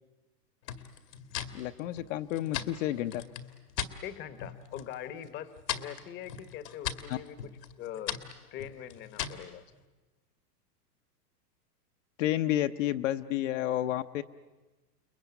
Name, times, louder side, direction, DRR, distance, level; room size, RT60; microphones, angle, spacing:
sound 1, 0.7-4.0 4.4-4.9 5.2-9.5, left 10 dB, 80° left, 2.3 m, -39 dB
voice 1, 1.5-3.2 7.1-7.2 12.2-14.2, left 13 dB, 50° left, 7 dB, 0.9 m, -30 dB
voice 2, 4.0-7.5 7.8-8.2 8.5-9.6, left 10 dB, 20° left, 13 dB, 1.0 m, -42 dB
29.5 x 21.0 x 9.3 m, 1.2 s
supercardioid pair, 150°, 49 cm